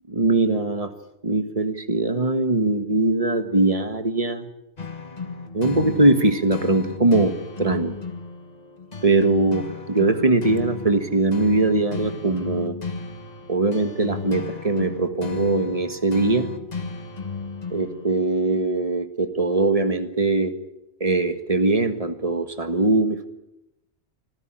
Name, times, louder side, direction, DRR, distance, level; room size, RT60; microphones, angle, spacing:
voice 1, 0.1-0.9 1.2-4.5 5.5-7.9 9.0-12.8 13.5-16.5 17.7-20.5 21.0-23.3, right 2 dB, 30° right, 9 dB, 1.7 m, -21 dB
sound 1, 4.8-18.3, left 4 dB, 35° left, 1.6 m, -34 dB
25.0 x 16.0 x 9.0 m, 0.90 s
omnidirectional pair, 1.2 m